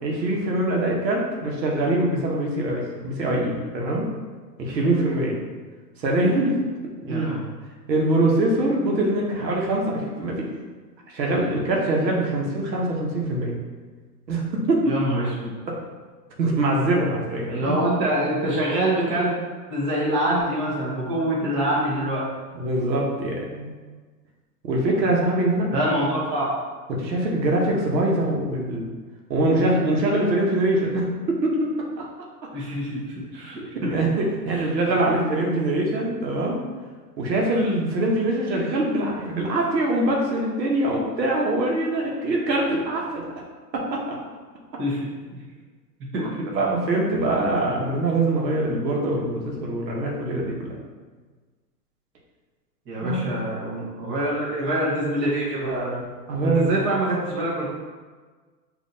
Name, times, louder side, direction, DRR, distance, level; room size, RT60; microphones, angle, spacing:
voice 1, 0.0-4.1 4.6-5.4 6.0-6.6 7.0-7.4 7.9-10.5 11.1-13.6 14.3-14.9 15.7-15.8 16.4-17.8 22.5-23.8 24.6-25.7 26.9-28.9 29.3-31.7 33.9-36.6 37.2-43.2 43.7-44.0 46.5-50.7 53.0-53.3 56.3-56.8, right 1 dB, 90° right, -2 dB, 1.1 m, -23 dB
voice 2, 7.1-7.4 14.8-15.5 17.5-19.3 19.7-22.2 25.7-26.5 32.5-33.0 33.3-33.9 44.8-45.1 46.1-46.4 52.9-56.0 56.4-57.7, right 1 dB, 25° right, -5 dB, 1.0 m, -25 dB
5.3 x 2.7 x 2.7 m, 1.4 s
hypercardioid pair, 130°, 49 cm